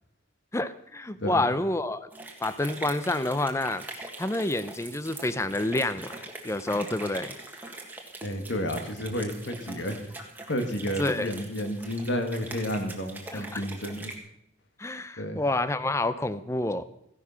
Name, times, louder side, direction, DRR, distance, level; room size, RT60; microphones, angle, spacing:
voice 1, 0.5-2.1 2.4-3.9 4.2-6.1 6.4-7.3 11.0-11.3 13.3-13.6 14.8-16.8, left 2 dB, 15° left, 14 dB, 0.5 m, -28 dB
sound 1, 2.1-14.2, right 2 dB, 10° right, 1.6 m, -42 dB
voice 2, 8.2-10.0 10.5-14.1 15.2-15.4, equal, 60° left, 6 dB, 1.9 m, -31 dB
15.0 x 11.0 x 5.7 m, 0.77 s
head